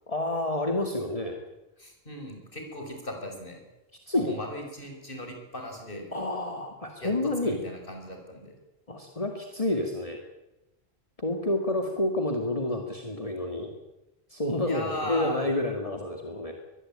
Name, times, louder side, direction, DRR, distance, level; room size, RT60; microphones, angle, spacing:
voice 1, 0.1-1.4 4.1-4.3 6.1-7.6 8.9-10.2 11.2-13.7 14.3-16.7, left 1 dB, 35° left, 3 dB, 2.4 m, -29 dB
voice 2, 1.8-3.6 4.1-6.1 7.0-8.5 14.6-15.5, left 1 dB, 55° left, 3 dB, 6.3 m, -37 dB
23.5 x 21.0 x 9.0 m, 1.0 s
omnidirectional pair, 1.1 m